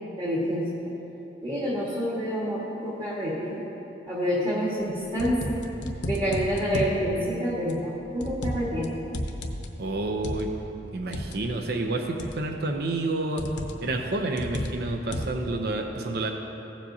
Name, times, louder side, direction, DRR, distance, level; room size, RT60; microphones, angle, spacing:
voice 1, 0.2-0.8 1.4-3.6 4.1-5.6 6.0-8.9, equal, 25° right, -7 dB, 1.6 m, -28 dB
sound 1, 4.8-7.0 7.7-8.8 9.1-11.4 12.2-12.6 13.4-13.9 14.4-15.5, left 1 dB, 75° left, 0.8 m, -33 dB
voice 2, 9.8-10.5 10.9-13.5 13.8-16.3, right 2 dB, 55° right, 3 dB, 0.6 m, -29 dB
15.5 x 7.3 x 2.8 m, 3.0 s
head